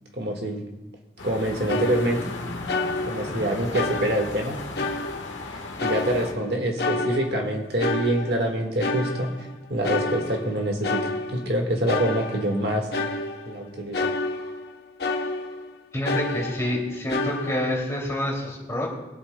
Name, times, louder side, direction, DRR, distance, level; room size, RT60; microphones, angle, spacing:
voice 1, 0.1-0.7 1.2-2.2 3.1-4.6 5.5-12.9 13.5-14.0, right 1 dB, 60° right, 2 dB, 1.6 m, -26 dB
Busy urban rush hour street, 1.2-6.3, left 2 dB, 90° left, 1.3 m, -36 dB
sound 1, 1.7-2.4 2.7-3.4 3.7-5.5 5.8-6.5 6.8-9.5 9.8-11.6 11.9-14.7 15.0-15.7 16.1-17.7, left 3 dB, 55° left, 0.8 m, -29 dB
voice 2, 15.9-18.9, left 1 dB, 15° left, -3 dB, 2.6 m, -28 dB
24.5 x 8.3 x 2.2 m, 1.0 s
head